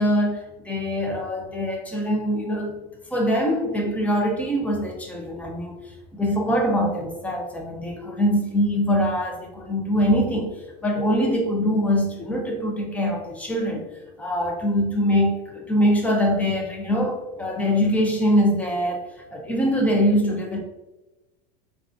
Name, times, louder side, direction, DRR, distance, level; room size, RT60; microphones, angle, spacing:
voice 1, 0.0-2.8 3.1-5.8 6.1-13.9 14.2-19.1 19.3-20.6, equal, 5° left, 0 dB, 0.5 m, -23 dB
3.4 x 2.4 x 2.5 m, 1.0 s
supercardioid pair, 140°, 21 cm